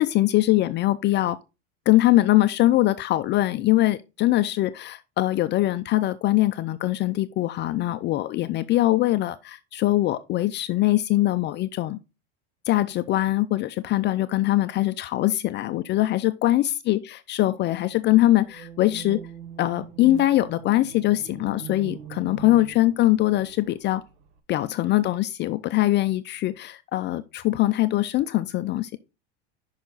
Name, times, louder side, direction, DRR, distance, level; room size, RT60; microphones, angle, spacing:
voice 1, 0.0-1.4 1.9-12.0 12.7-19.3 19.6-24.0 24.5-29.0, left 16 dB, 35° left, 0.4 m, -22 dB
sound 1, 18.4-24.4, right 9 dB, 85° right, 1.2 m, -42 dB
6.0 x 5.7 x 3.8 m
supercardioid pair, 125°, 32 cm